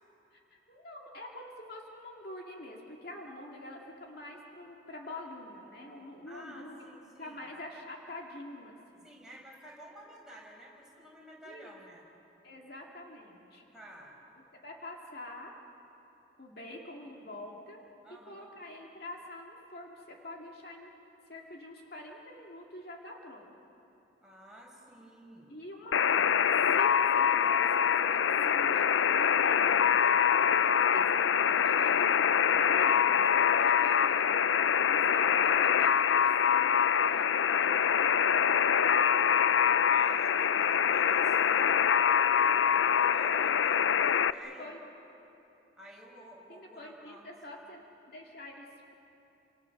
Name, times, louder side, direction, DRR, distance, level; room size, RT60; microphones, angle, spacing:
voice 1, 0.3-6.9 7.2-9.0 11.5-11.7 12.4-13.6 14.6-15.5 16.4-17.8 18.3-20.9 21.3-23.6 25.5-30.0 30.6-34.3 34.8-39.6 44.4-44.8 46.5-47.8 48.1-48.9, left 1 dB, 55° left, -1 dB, 2.3 m, -46 dB
voice 2, 6.3-7.4 9.0-12.0 13.7-14.2 18.0-18.5 24.2-25.6 39.9-41.9 42.9-44.7 45.8-47.3, equal, 5° right, -4 dB, 5.2 m, -51 dB
Alarm, 25.9-44.3, left 8 dB, 80° left, 0.5 m, -25 dB
29.5 x 26.5 x 6.6 m, 3.0 s
head